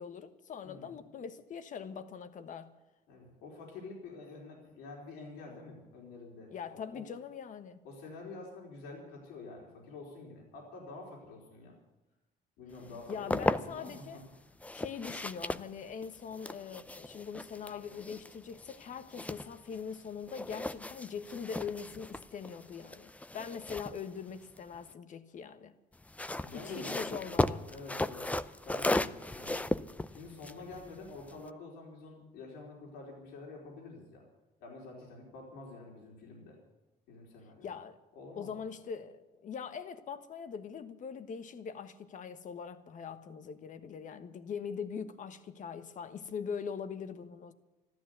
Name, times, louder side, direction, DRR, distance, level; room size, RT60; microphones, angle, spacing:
voice 1, 0.0-2.7 6.5-7.8 13.1-14.2 14.7-25.7 26.5-27.7 37.6-38.0 38.4-47.5, left 6 dB, 50° left, 1.3 m, -42 dB
voice 2, 0.6-1.0 3.1-7.1 7.8-11.7 12.6-14.2 26.4-28.3 28.7-29.7 30.1-34.2 34.6-36.6 37.1-37.7 38.1-38.5, left 3 dB, 90° left, 4.4 m, -48 dB
sound 1, 12.9-14.0 14.6-20.0 20.3-24.9 25.9-31.5, left 2 dB, 10° left, 0.5 m, -36 dB
13.5 x 12.5 x 8.1 m
cardioid pair, 110°, 17 cm